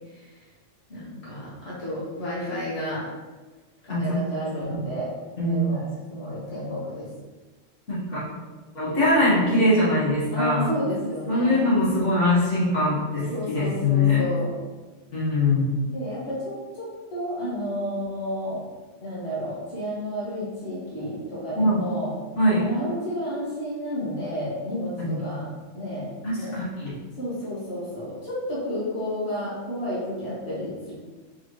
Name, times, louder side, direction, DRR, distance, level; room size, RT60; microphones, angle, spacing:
voice 1, 0.9-3.0 3.8-5.1 5.4-5.8 6.1-7.1 10.3-11.7 13.3-14.5 15.9-18.6 19.0-22.1 22.6-25.5 25.7-26.1 26.3-26.6 27.2-30.9, equal, 65° left, -9 dB, 1.7 m, -31 dB
voice 2, 3.9-4.2 4.7-4.8 5.4-5.7 6.3-6.4 7.9-8.2 8.7-10.7 11.3-14.2 15.1-15.7 21.6-21.8 22.4-22.7 25.0-25.2 26.2-26.9, left 1 dB, 85° left, -9 dB, 1.9 m, -22 dB
4.8 x 3.4 x 3.1 m, 1.3 s
omnidirectional pair, 1.2 m